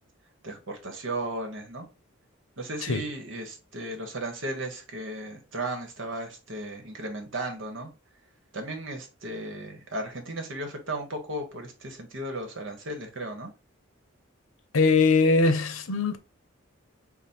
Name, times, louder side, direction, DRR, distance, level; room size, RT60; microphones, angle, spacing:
voice 1, 0.4-1.9 2.6-7.9 8.5-13.5, right 1 dB, 70° right, 1.1 m, -35 dB
voice 2, 14.7-16.2, left 4 dB, 90° left, 0.7 m, -21 dB
5.1 x 2.1 x 4.2 m
head